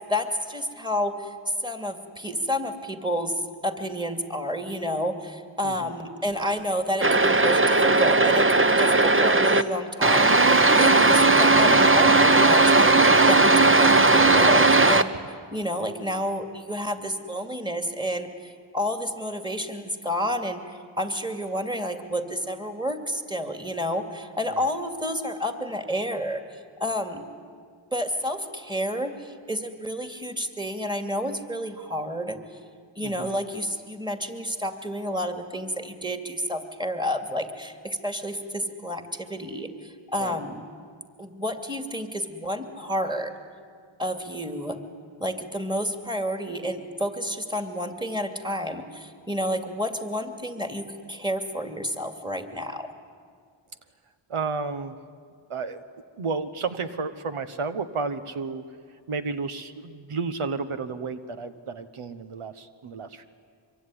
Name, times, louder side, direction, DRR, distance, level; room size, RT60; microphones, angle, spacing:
voice 1, 0.1-27.2 27.9-32.4 33.0-40.6 41.2-43.3 44.0-44.8 45.2-52.9, equal, 10° right, 6 dB, 2.7 m, -30 dB
sound 1, 7.0-9.6 10.0-15.0, right 3 dB, 25° right, 1.1 m, -17 dB
voice 2, 54.3-54.9 55.5-55.8 56.2-58.6 59.1-63.3, right 4 dB, 80° right, 9 dB, 1.2 m, -32 dB
24.5 x 23.5 x 9.9 m, 2.1 s
cardioid pair, 50°, 49 cm